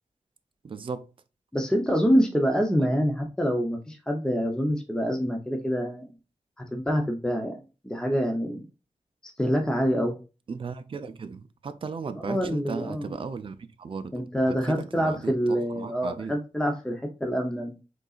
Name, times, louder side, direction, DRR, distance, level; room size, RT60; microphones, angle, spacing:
voice 1, 0.6-1.1 2.8-3.0 10.5-16.3, right 5 dB, 45° right, 0.5 m, -36 dB
voice 2, 1.5-6.0 6.7-8.6 9.2-10.2 12.1-13.2 14.1-17.7, equal, 5° left, 0.7 m, -26 dB
5.2 x 3.9 x 2.4 m
wide cardioid pair, 110°, 13 cm